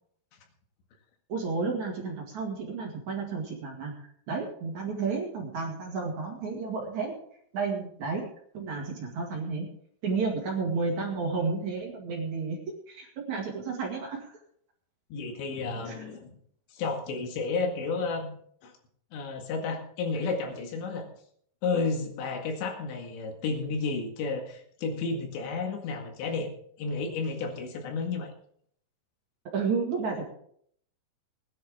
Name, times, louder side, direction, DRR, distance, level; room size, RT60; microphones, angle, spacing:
voice 1, 1.3-3.9 4.3-7.2 7.5-8.3 8.5-9.7 10.0-14.4 15.9-16.1 29.5-30.3, right 4 dB, 50° right, 0 dB, 2.9 m, -32 dB
voice 2, 15.1-16.3 16.7-18.3 18.6-18.7 19.1-21.1 21.6-26.5 26.8-28.3, left 4 dB, 80° left, 3 dB, 4.2 m, -32 dB
20.5 x 10.0 x 3.6 m, 0.64 s
omnidirectional pair, 5.0 m